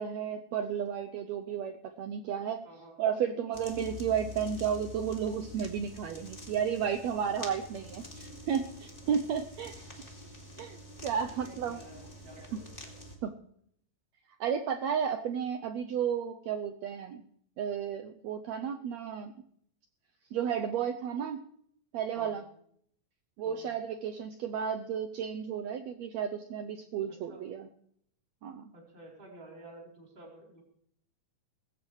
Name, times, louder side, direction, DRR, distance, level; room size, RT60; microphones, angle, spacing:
voice 1, 0.0-2.7 3.0-9.7 10.6-10.8 11.0-11.8 12.5-12.6 13.2-13.3 14.4-17.2 17.6-19.3 20.3-21.5 21.9-22.4 23.4-27.7 28.4-28.7, right 8 dB, 85° right, 6 dB, 1.5 m, -33 dB
voice 2, 2.6-3.0 9.1-9.3 11.4-12.7 22.1-22.4 23.4-23.6 27.3-27.4 28.7-30.6, right 2 dB, 15° right, -2 dB, 3.8 m, -51 dB
sound 1, 3.5-13.2, left 2 dB, 15° left, 2.2 m, -47 dB
20.5 x 16.0 x 3.2 m, 0.67 s
omnidirectional pair, 4.0 m